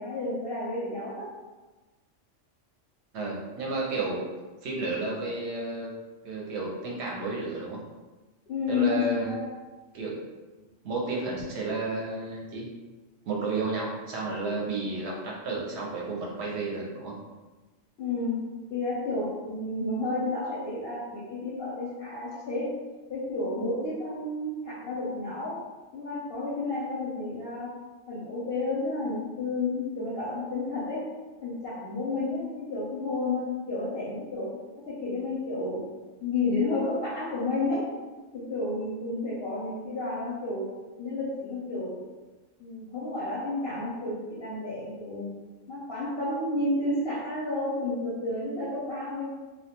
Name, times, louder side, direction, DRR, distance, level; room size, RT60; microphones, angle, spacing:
voice 1, 0.0-1.3 8.5-9.5 18.0-18.4 18.7-22.8 23.1-25.6 25.9-27.7 28.1-31.1 31.4-34.6 34.8-35.9 36.2-37.9 38.3-40.7 41.0-42.0 42.6-45.3 45.7-49.3, left 2 dB, 60° left, -7 dB, 0.7 m, -31 dB
voice 2, 3.1-4.2 4.6-5.9 6.2-7.8 8.7-9.4 9.9-10.2 10.8-12.7 13.2-17.2, right 3 dB, 70° right, -2 dB, 0.8 m, -32 dB
2.2 x 2.2 x 2.8 m, 1.2 s
omnidirectional pair, 1.3 m